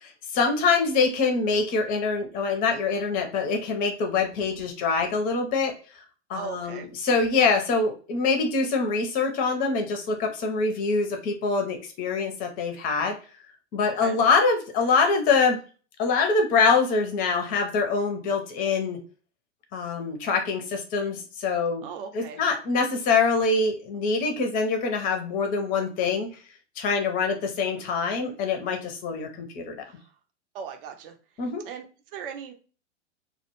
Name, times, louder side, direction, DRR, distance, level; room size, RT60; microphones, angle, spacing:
voice 1, 0.0-5.7 6.3-13.1 13.7-15.6 16.0-19.0 19.7-21.8 22.1-26.3 26.8-29.7 31.4-31.6, left 4 dB, 25° left, 4 dB, 0.5 m, -24 dB
voice 2, 6.3-6.9 14.0-14.2 21.8-22.4 29.8-30.0 30.5-31.1 31.6-31.9 32.1-32.5, right 6 dB, 50° right, 5 dB, 0.7 m, -38 dB
2.1 x 2.1 x 2.9 m, 0.37 s
hypercardioid pair, 115°, 36 cm